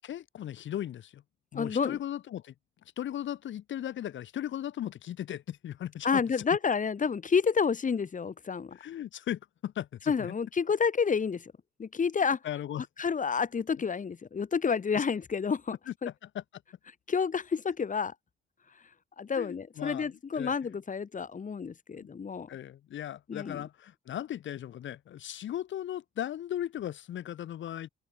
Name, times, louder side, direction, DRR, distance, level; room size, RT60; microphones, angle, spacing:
voice 1, 0.0-1.2 1.5-2.5 3.0-6.2 8.7-10.3 12.4-12.9 15.0-15.1 15.9-16.6 19.4-20.5 22.0-22.1 22.5-27.9, left 11 dB, 70° left, 5.1 m, -37 dB
voice 2, 1.5-2.0 6.0-8.7 10.1-11.5 11.8-12.4 13.0-15.8 16.0-16.1 17.1-18.1 19.2-22.5 23.3-23.6, left 6 dB, 40° left, 5.3 m, -29 dB
cardioid pair, 90°, 20 cm